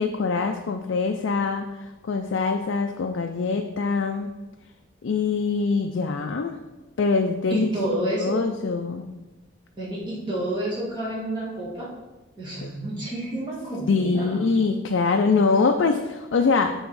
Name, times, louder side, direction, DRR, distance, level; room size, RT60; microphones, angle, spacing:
voice 1, 0.0-4.3 5.0-6.6 7.0-7.7 8.0-9.1 12.6-12.7 13.9-16.7, left 4 dB, 75° left, 4 dB, 0.4 m, -24 dB
voice 2, 7.5-8.4 9.8-11.9 12.4-14.5, right 1 dB, 25° right, -8 dB, 2.1 m, -29 dB
7.2 x 3.5 x 4.7 m, 1.1 s
head